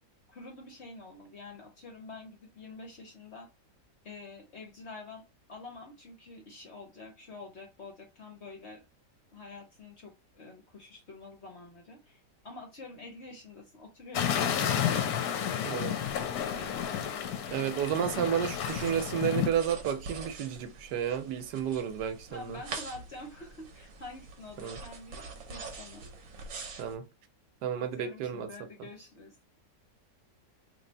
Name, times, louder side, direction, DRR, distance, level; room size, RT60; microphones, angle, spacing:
voice 1, 0.3-3.5 4.0-8.8 9.3-15.1 15.4-16.8 22.3-26.1 27.8-29.4, left 3 dB, 55° left, 0.8 m, -47 dB
sound 1, 14.1-19.5, left 9 dB, 70° left, 1.0 m, -31 dB
voice 2, 15.6-15.9 17.5-22.6 24.6-24.8 26.8-27.1 27.6-28.5, right 8 dB, 80° right, 1.2 m, -31 dB
sound 2, 16.1-27.0, right 4 dB, 60° right, 1.0 m, -46 dB
3.1 x 2.6 x 4.2 m
omnidirectional pair, 1.8 m